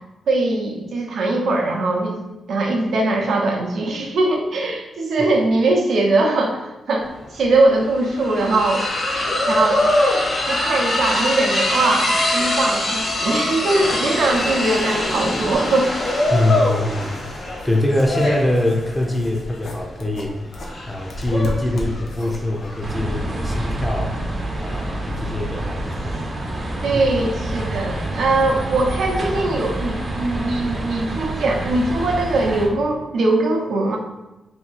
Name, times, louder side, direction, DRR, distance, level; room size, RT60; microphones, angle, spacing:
voice 1, 0.3-2.2 2.5-8.8 9.5-9.9 10.5-15.9 26.8-34.0, right 2 dB, 75° right, 1 dB, 0.6 m, -21 dB
sound 1, 7.1-7.2 7.4-26.3, left 1 dB, 40° left, 0.8 m, -24 dB
sound 2, 14.3-23.5, left 1 dB, 70° left, 0.6 m, -37 dB
voice 2, 16.3-20.6 20.9-24.2 24.6-26.2 26.9-27.0 27.6-27.7, left 1 dB, 10° left, 3 dB, 0.4 m, -23 dB
sound 3, 22.8-32.7, right 1 dB, 35° right, 0.6 m, -27 dB
2.8 x 2.6 x 3.9 m, 0.99 s
cardioid pair, 115°, 0 cm